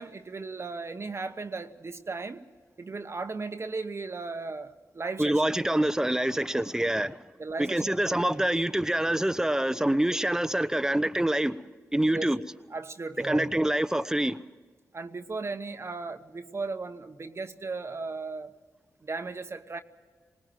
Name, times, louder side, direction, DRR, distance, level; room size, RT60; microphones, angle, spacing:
voice 1, 0.0-2.4 2.8-5.4 5.7-5.9 7.4-8.4 12.1-13.5 14.9-18.5 19.0-19.8, right 3 dB, 45° right, 1.1 m, -36 dB
voice 2, 5.2-7.2 7.6-11.6 11.9-12.4 13.2-14.4, right 1 dB, 10° right, 0.9 m, -26 dB
20.0 x 19.0 x 7.5 m
supercardioid pair, 45°, 6 cm